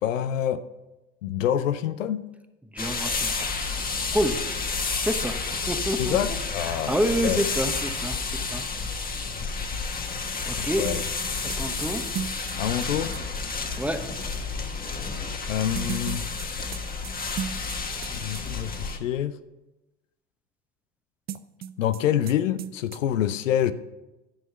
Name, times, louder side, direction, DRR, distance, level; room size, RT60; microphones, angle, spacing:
voice 1, 0.0-0.6 1.2-2.3 6.0-7.0 7.2-7.4 10.6-11.0 12.6-13.2 15.5-16.3 18.1-19.4 21.8-23.7, left 10 dB, 80° left, 12 dB, 0.6 m, -26 dB
voice 2, 2.7-3.7 4.1-4.4 5.0-5.4 5.7-6.2 6.7-8.6 10.4-10.8 11.6-12.0 13.8-14.0, equal, 5° right, 7 dB, 1.0 m, -28 dB
sound 1, 2.8-19.0, left 4 dB, 25° left, 1.3 m, -30 dB
sound 2, 10.8-13.2 15.7-18.1 18.3-18.4 21.3-22.0 22.3-22.4 22.6-23.0, right 9 dB, 25° right, 0.3 m, -35 dB
11.0 x 6.3 x 5.6 m, 1.0 s
hypercardioid pair, 70°, 38 cm